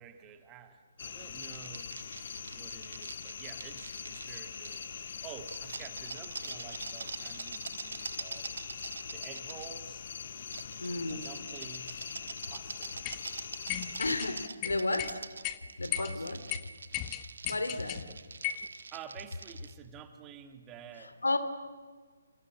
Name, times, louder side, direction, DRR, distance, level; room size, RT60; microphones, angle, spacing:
voice 1, 0.0-1.9 2.5-8.5 9.1-10.1 11.1-13.2 15.8-16.4 18.1-18.2 18.9-21.2, right 8 dB, 20° right, 7 dB, 2.0 m, -50 dB
sound 1, 1.0-14.5, left 7 dB, 50° left, 0.9 m, -43 dB
sound 2, 1.4-4.9 5.3-9.7 10.5-19.7, right 4 dB, 65° right, 1.5 m, -45 dB
voice 2, 10.8-11.3 14.0-15.2 15.8-16.4 17.5-18.1 21.2-21.4, left 2 dB, 80° left, 10 dB, 2.9 m, -32 dB
sound 3, 13.0-13.2 13.7-14.3 14.6-15.1 15.4-15.6 15.9-16.1 16.5-16.6 16.9-18.0 18.4-18.7, left 13 dB, 25° left, 1.4 m, -35 dB
28.5 x 27.5 x 7.5 m, 1.5 s
figure-of-eight pair, 140°, 0 cm